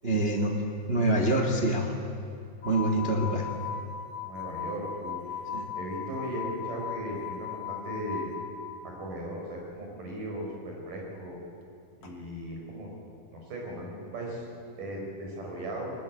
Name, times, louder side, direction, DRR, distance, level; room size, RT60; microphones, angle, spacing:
voice 1, 0.0-0.6 0.9-1.9 2.6-3.4 5.5-5.7, right 1 dB, 30° right, 2 dB, 1.1 m, -25 dB
wine glass high, 2.6-8.8 12.0-12.1, left 7 dB, 40° left, 1.8 m, -38 dB
voice 2, 4.2-5.4 5.8-8.3 8.8-11.4 12.0-12.9 13.3-14.4 14.8-15.9, right 1 dB, 60° right, -1 dB, 6.8 m, -37 dB
21.0 x 21.0 x 8.5 m, 2.7 s
omnidirectional pair, 4.4 m